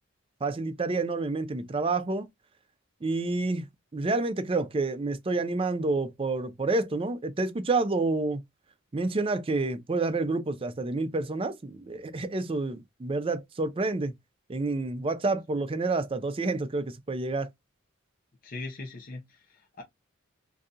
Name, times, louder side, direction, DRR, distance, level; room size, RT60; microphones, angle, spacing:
voice 1, 0.4-2.3 3.0-3.7 3.9-8.4 8.9-14.1 14.5-17.5, right 3 dB, 25° right, 0.4 m, -29 dB
voice 2, 18.4-19.8, left 2 dB, 40° left, 0.7 m, -40 dB
3.9 x 2.7 x 2.4 m
head